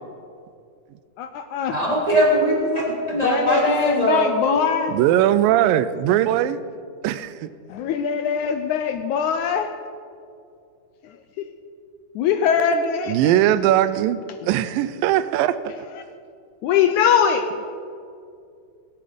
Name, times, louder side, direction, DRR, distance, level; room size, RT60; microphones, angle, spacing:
voice 1, 1.2-1.8 3.2-4.9 7.7-9.7 12.2-13.2 15.9-16.0 16.6-17.7, left 7 dB, 85° left, 8 dB, 1.7 m, -22 dB
voice 2, 1.7-4.6, equal, 10° left, -5 dB, 3.0 m, -21 dB
voice 3, 4.9-6.6 7.0-7.5 13.1-15.6, right 12 dB, 80° right, 15 dB, 2.2 m, -20 dB
20.5 x 11.0 x 5.2 m, 2.3 s
omnidirectional pair, 4.1 m